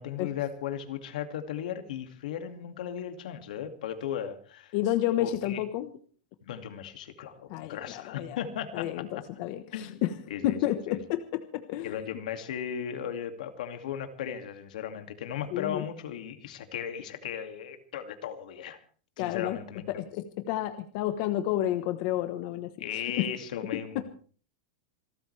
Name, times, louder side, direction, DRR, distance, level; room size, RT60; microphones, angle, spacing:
voice 1, 0.0-4.7 5.2-5.6 6.4-9.0 9.7-10.0 10.3-11.0 11.8-18.8 19.2-19.9 22.8-24.0, left 9 dB, 80° left, 7 dB, 2.4 m, -36 dB
voice 2, 4.7-5.9 7.5-8.4 8.7-10.1 10.4-12.0 15.5-15.9 19.2-19.6 19.9-23.3 23.7-24.0, left 13 dB, 45° left, 9 dB, 1.1 m, -31 dB
27.0 x 13.0 x 3.4 m, 0.42 s
supercardioid pair, 160°, 4 cm